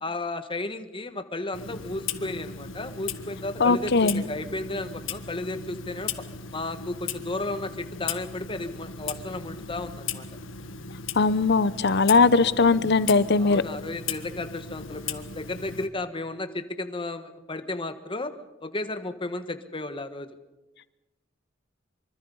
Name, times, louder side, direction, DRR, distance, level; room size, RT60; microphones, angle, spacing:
voice 1, 0.0-6.1 6.5-10.3 13.4-18.3 18.6-20.3, left 2 dB, 25° left, 9 dB, 1.3 m, -33 dB
Clock, 1.5-15.9, left 6 dB, 85° left, 1.6 m, -37 dB
voice 2, 3.6-4.2 11.1-13.6, left 4 dB, 60° left, 16 dB, 0.8 m, -20 dB
25.0 x 24.5 x 5.5 m, 1.0 s
head